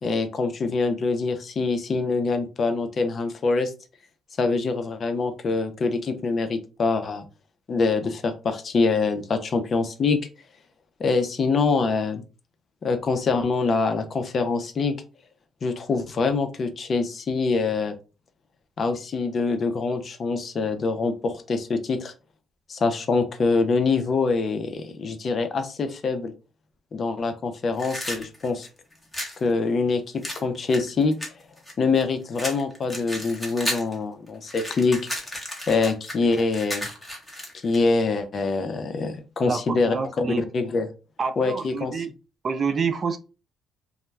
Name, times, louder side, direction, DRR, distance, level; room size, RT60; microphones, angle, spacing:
voice 1, 0.0-3.7 4.4-7.3 7.7-10.3 11.0-12.2 12.8-15.0 15.6-17.9 18.8-22.1 22.7-26.3 26.9-28.7 29.4-31.1 31.8-35.0 35.7-36.9 37.5-39.9 40.4-40.9 41.4-42.0, left 4 dB, 45° left, 8 dB, 0.5 m, -24 dB
sound 1, 27.7-29.4 30.2-32.0 32.4-34.0 34.3-37.8, left 1 dB, 10° left, 1.0 m, -33 dB
voice 2, 39.4-40.5 41.2-42.1 42.4-43.2, right 5 dB, 40° right, 9 dB, 0.4 m, -27 dB
2.2 x 2.1 x 3.2 m, 0.32 s
cardioid pair, 85°, 0 cm